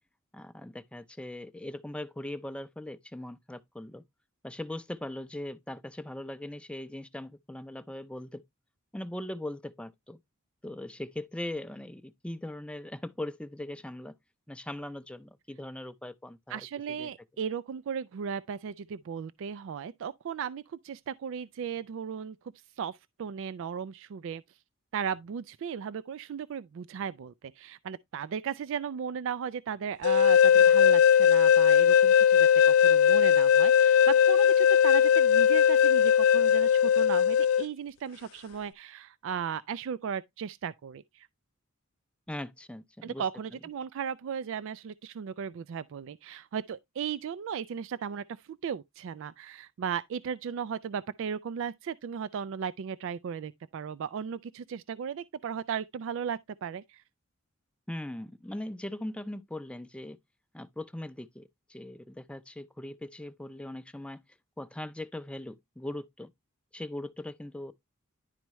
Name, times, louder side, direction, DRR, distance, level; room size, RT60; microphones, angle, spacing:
voice 1, 0.3-4.0 4.4-8.4 8.9-10.2 10.6-14.1 14.5-16.6 16.9-17.1 42.3-43.2 43.5-43.6 57.9-60.2 60.5-64.2 64.6-66.3 66.7-67.7, left 1 dB, 5° left, 0.5 m, -40 dB
voice 2, 16.5-22.4 22.8-24.4 24.9-41.3 43.0-57.0, right 7 dB, 65° right, 0.3 m, -36 dB
sound 1, 30.0-37.6, left 8 dB, 85° left, 0.3 m, -20 dB
10.5 x 4.5 x 3.0 m
head